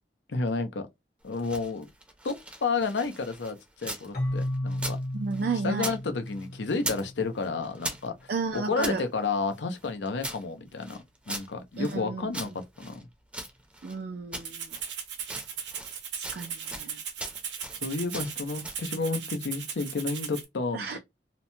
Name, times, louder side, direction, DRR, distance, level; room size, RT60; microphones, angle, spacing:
voice 1, 0.3-0.9 1.2-1.9 2.2-2.4 2.6-3.6 3.8-5.0 5.6-8.1 8.5-11.0 11.3-12.5 12.8-13.1 17.8-21.0, left 4 dB, 90° left, 0.6 m, -31 dB
sound 1, 1.2-4.1 4.4-6.0 6.3-7.1 7.4-9.0 9.5-12.0 12.3-14.0 14.3-14.9 15.2-16.9 17.2-17.8 18.1-18.9, right 1 dB, 5° right, 0.6 m, -39 dB
Keyboard (musical), 4.1-7.8, left 1 dB, 55° left, 1.1 m, -34 dB
voice 2, 5.1-5.9 8.3-9.0 11.8-12.3 13.8-14.7 16.1-17.0 20.7-21.0, right 4 dB, 60° right, 0.4 m, -32 dB
Rattle (instrument), 14.4-20.4, right 7 dB, 85° right, 0.7 m, -37 dB
2.9 x 2.1 x 2.7 m
head